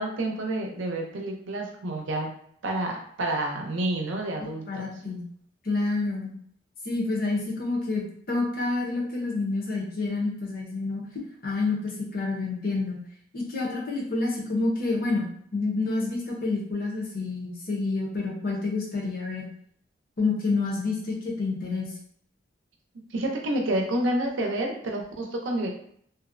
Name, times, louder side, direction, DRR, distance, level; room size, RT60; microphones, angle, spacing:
voice 1, 0.0-2.3 2.6-4.8 23.1-25.7, right 1 dB, 85° right, 1 dB, 0.5 m, -29 dB
voice 2, 4.7-5.2 5.6-6.3 6.8-11.0 11.4-13.0 13.3-19.5 20.2-21.9, left 3 dB, 50° left, -2 dB, 0.7 m, -28 dB
2.5 x 2.0 x 2.5 m, 0.64 s
head